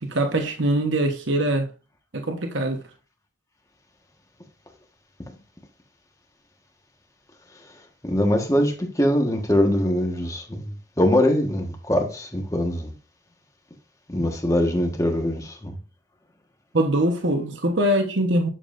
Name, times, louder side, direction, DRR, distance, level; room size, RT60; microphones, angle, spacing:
voice 1, 0.0-1.7 2.1-2.8 16.7-18.5, right 1 dB, 75° right, 1.2 m, -23 dB
voice 2, 8.0-12.9 14.1-15.8, left 1 dB, 15° left, 1.5 m, -22 dB
10.0 x 7.3 x 2.6 m
head